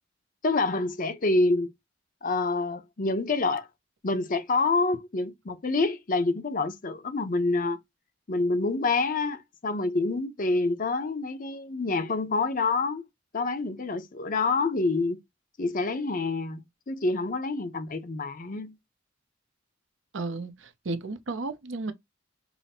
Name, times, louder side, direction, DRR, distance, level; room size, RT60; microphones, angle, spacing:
voice 1, 0.4-1.7 2.2-3.7 4.0-7.8 8.3-13.0 13.3-15.2 15.6-18.7, left 3 dB, 45° left, 0.7 m, -27 dB
voice 2, 20.1-21.9, right 3 dB, 85° right, 0.7 m, -33 dB
5.5 x 2.0 x 4.1 m
head